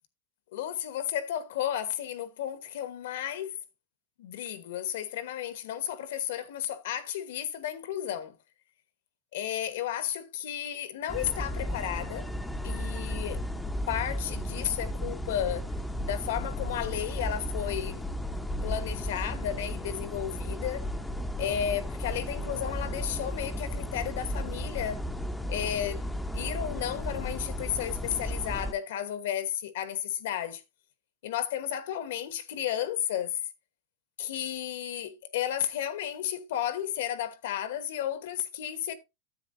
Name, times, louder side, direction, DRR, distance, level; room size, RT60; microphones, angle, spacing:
voice 1, 0.5-3.5 4.2-8.3 9.3-12.3 12.6-13.4 13.9-15.6 16.0-18.0 18.6-20.8 21.4-25.0 25.5-26.0 26.3-30.6 31.2-33.4 34.2-38.9, left 10 dB, 70° left, 1.2 m, -33 dB
sound 1, 11.1-28.7, left 1 dB, 5° left, 0.6 m, -34 dB
10.0 x 7.9 x 2.6 m
supercardioid pair, 150°, 0 cm